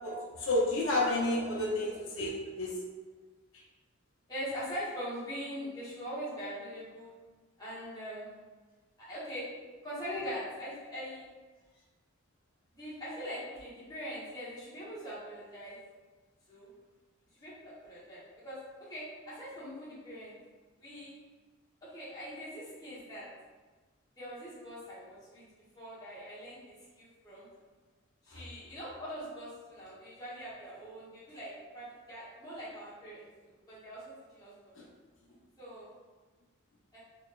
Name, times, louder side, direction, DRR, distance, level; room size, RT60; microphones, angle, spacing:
voice 1, 0.4-2.8 3.5-3.6 28.3-28.4 34.8-34.9, left 1 dB, 70° left, -3 dB, 0.8 m, -31 dB
voice 2, 4.3-7.1 7.6-8.4 9.0-9.5 9.8-11.3 12.8-15.8 16.5-16.7 17.4-20.3 20.8-21.2 21.8-23.3 24.2-25.4 25.7-27.5 28.2-33.2 33.7-34.0 34.3-34.5 35.6-35.9 36.9-37.0, equal, 20° left, -10 dB, 1.1 m, -42 dB
4.0 x 3.1 x 2.4 m, 1.3 s
head